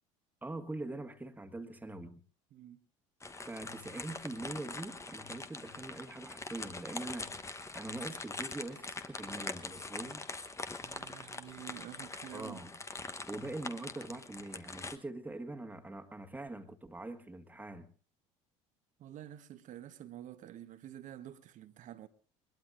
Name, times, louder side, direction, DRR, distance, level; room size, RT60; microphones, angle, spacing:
voice 1, 0.4-2.2 3.4-10.2 12.3-12.7 13.3-17.9, right 2 dB, 10° right, 1.6 m, -43 dB
voice 2, 2.5-2.8 10.8-12.6 19.0-22.1, right 11 dB, 50° right, 1.2 m, -49 dB
sound 1, 3.2-15.0, left 3 dB, 15° left, 1.0 m, -43 dB
21.5 x 21.0 x 2.6 m
hypercardioid pair, 65°, 17 cm